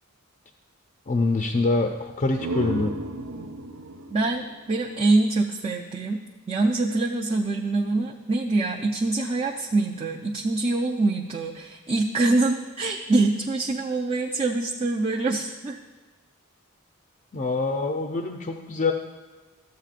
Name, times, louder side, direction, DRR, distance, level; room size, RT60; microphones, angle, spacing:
voice 1, 1.1-2.9 17.3-18.9, left 3 dB, 35° left, 2 dB, 0.5 m, -25 dB
sound 1, 2.1-5.7, right 2 dB, 80° right, 0.8 m, -35 dB
voice 2, 4.1-6.2 6.5-15.8, right 2 dB, 30° right, 0 dB, 0.5 m, -24 dB
13.5 x 8.0 x 2.5 m, 1.3 s
head